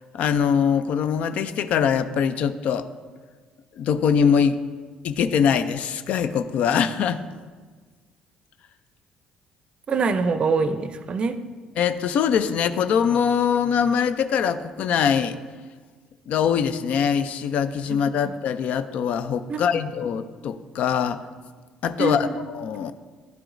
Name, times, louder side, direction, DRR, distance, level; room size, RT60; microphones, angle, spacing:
voice 1, 0.0-2.9 3.8-4.6 5.0-7.2 11.8-15.4 16.3-21.2 21.8-22.9, left 7 dB, 65° left, 12 dB, 0.3 m, -23 dB
voice 2, 9.9-11.4 17.9-18.0 18.2-18.3 19.5-19.8 22.0-22.4, right 4 dB, 45° right, 11 dB, 0.5 m, -24 dB
10.5 x 4.8 x 2.5 m, 1.5 s
supercardioid pair, 65°, 2 cm